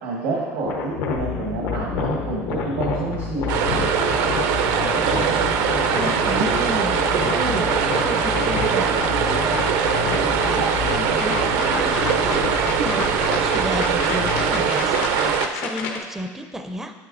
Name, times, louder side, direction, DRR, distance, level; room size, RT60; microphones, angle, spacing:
voice 1, 0.0-3.5, right 3 dB, 85° right, -3 dB, 1.3 m, -28 dB
sound 1, 0.6-16.0, left 5 dB, 85° left, 0.9 m, -30 dB
sound 2, 1.1-14.7, left 7 dB, 55° left, 0.6 m, -32 dB
sound 3, 3.5-15.5, right 7 dB, 70° right, 0.5 m, -22 dB
voice 2, 4.8-5.5 5.8-7.7 8.0-12.5 12.8-16.9, equal, 5° right, 5 dB, 0.4 m, -32 dB
8.8 x 8.6 x 2.5 m, 1.5 s
cardioid pair, 145°, 6 cm